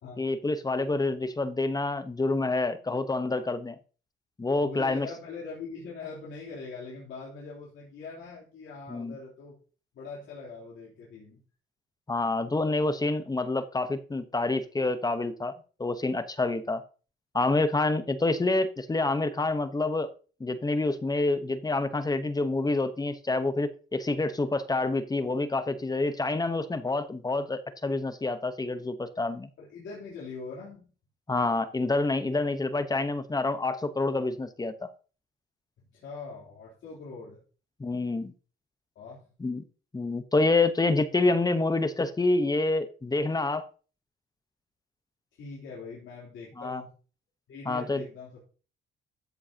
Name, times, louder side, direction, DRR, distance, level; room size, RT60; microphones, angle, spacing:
voice 1, 0.2-3.8 4.4-5.1 8.9-9.2 12.1-15.5 15.8-16.8 17.3-20.1 20.4-29.5 31.3-34.9 37.8-38.3 39.4-39.6 39.9-43.7 46.6-46.8 47.7-48.0, left 2 dB, 20° left, 11 dB, 1.0 m, -27 dB
voice 2, 4.6-9.6 9.9-11.4 29.6-30.9 35.9-37.4 38.9-39.2 45.4-46.9 47.5-48.4, left 4 dB, 75° left, -5 dB, 3.4 m, -42 dB
13.0 x 7.7 x 2.9 m, 0.38 s
cardioid pair, 90°, 20 cm